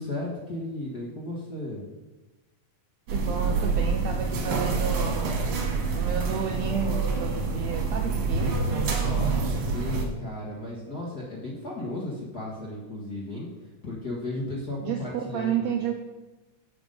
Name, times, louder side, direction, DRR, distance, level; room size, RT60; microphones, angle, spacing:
voice 1, 0.0-1.8 8.9-13.5 13.8-15.7, left 2 dB, 40° left, -5 dB, 1.4 m, -35 dB
sound 1, 3.1-10.0, right 4 dB, 65° right, 2.6 m, -26 dB
voice 2, 3.1-5.4 5.9-9.0 14.8-15.9, right 7 dB, 80° right, 3 dB, 1.6 m, -32 dB
7.6 x 7.1 x 5.3 m, 1.1 s
omnidirectional pair, 3.7 m